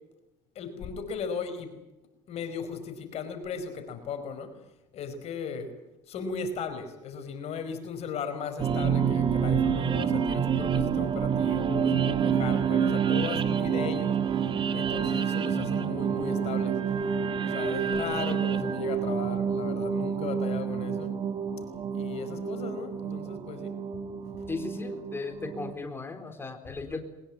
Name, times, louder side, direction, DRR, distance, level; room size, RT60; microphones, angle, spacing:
voice 1, 0.5-1.8 2.3-4.6 4.9-5.7 6.1-14.3 14.7-16.8 17.4-21.1 21.9-23.8 24.2-24.5 26.7-27.0, left 5 dB, 55° left, 8 dB, 4.8 m, -37 dB
sound 1, 8.6-25.7, right 7 dB, 40° right, 1.9 m, -28 dB
voice 2, 24.5-27.0, left 3 dB, 20° left, 6 dB, 3.9 m, -36 dB
21.5 x 20.5 x 9.7 m, 1.0 s
supercardioid pair, 90°, 13 cm